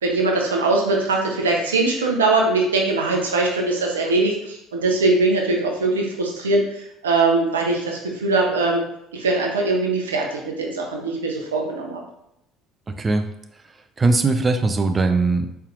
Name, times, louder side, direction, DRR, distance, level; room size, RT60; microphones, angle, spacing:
voice 1, 0.0-8.9 9.1-12.0, right 3 dB, 85° right, 0 dB, 0.7 m, -21 dB
voice 2, 14.0-15.7, right 3 dB, 25° right, 8 dB, 0.5 m, -20 dB
4.4 x 3.4 x 2.5 m, 0.80 s
hypercardioid pair, 60°, 0 cm